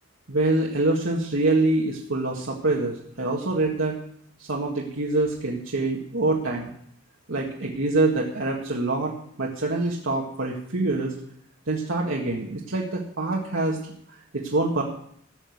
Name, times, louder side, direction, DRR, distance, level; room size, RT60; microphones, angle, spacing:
voice 1, 0.3-3.9 4.4-6.7 7.3-9.1 9.4-11.1 11.7-13.8 14.3-14.8, right 2 dB, 80° right, -2 dB, 1.8 m, -25 dB
15.5 x 6.2 x 8.5 m, 0.68 s
head